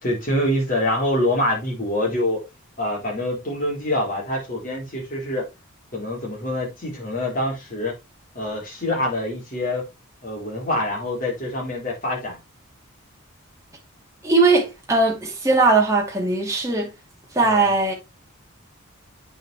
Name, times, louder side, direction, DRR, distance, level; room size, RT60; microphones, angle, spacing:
voice 1, 0.0-2.5 2.8-5.5 5.9-8.0 8.3-9.9 10.2-12.4 17.4-17.7, left 1 dB, 40° left, 4.5 m, -25 dB
voice 2, 14.2-16.9 17.3-17.9, right 3 dB, 15° right, 2.5 m, -19 dB
8.9 x 5.5 x 3.5 m
head